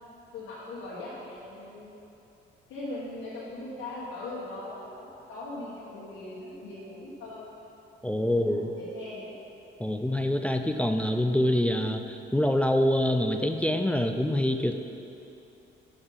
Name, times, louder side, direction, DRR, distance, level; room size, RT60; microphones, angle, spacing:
voice 1, 0.3-2.0 2.7-7.5 8.1-9.3, left 2 dB, 90° left, -9 dB, 1.3 m, -40 dB
voice 2, 8.0-8.7 9.8-14.7, left 1 dB, 5° left, 6 dB, 0.3 m, -25 dB
6.6 x 5.0 x 5.4 m, 2.8 s
cardioid pair, 90°, 20 cm